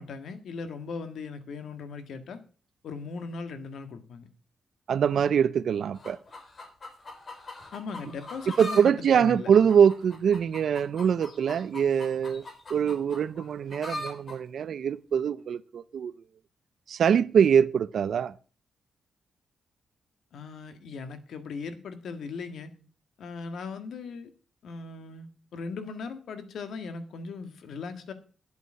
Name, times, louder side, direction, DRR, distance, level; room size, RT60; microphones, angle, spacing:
voice 1, 0.0-2.4 2.8-4.3 7.7-9.5 20.3-22.8 23.2-24.3 24.6-28.1, left 4 dB, 75° left, 1.7 m, -38 dB
voice 2, 4.9-6.2 8.6-12.4 12.7-16.1 16.9-18.3, right 7 dB, 65° right, 0.5 m, -23 dB
sound 1, 5.9-8.9 9.2-14.4 15.2-15.3, left 1 dB, 40° left, 3.7 m, -41 dB
11.5 x 8.2 x 6.3 m
cardioid pair, 105°, 0 cm